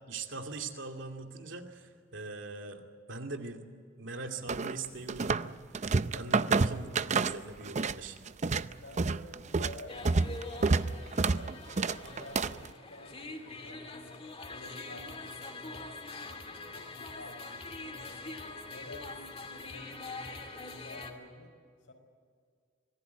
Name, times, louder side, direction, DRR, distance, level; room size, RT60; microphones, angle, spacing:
voice 1, 0.1-3.6 4.0-8.2, right 3 dB, 85° right, 4 dB, 2.5 m, -42 dB
sound 1, 4.5-5.5 5.7-8.0 8.3-12.7, right 4 dB, 40° right, 0.6 m, -29 dB
voice 2, 8.6-18.4 18.6-21.6 21.9-22.0, left 1 dB, 85° left, 5 dB, 5.0 m, -51 dB
sound 2, 9.9-21.1, left 3 dB, 35° left, 2.6 m, -44 dB
25.5 x 19.0 x 8.2 m, 2.1 s
head